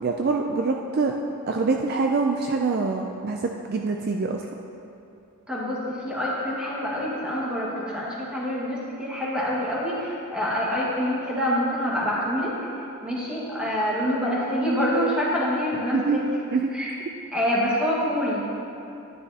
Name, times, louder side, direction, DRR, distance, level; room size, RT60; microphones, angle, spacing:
voice 1, 0.0-1.1 1.5-4.4 15.9-16.2 16.5-16.7, right 4 dB, 45° right, 2 dB, 0.4 m, -25 dB
voice 2, 5.5-12.5 13.0-16.2 16.7-16.9 17.3-18.4, equal, 5° right, -7 dB, 1.7 m, -26 dB
11.0 x 10.0 x 2.9 m, 2.7 s
head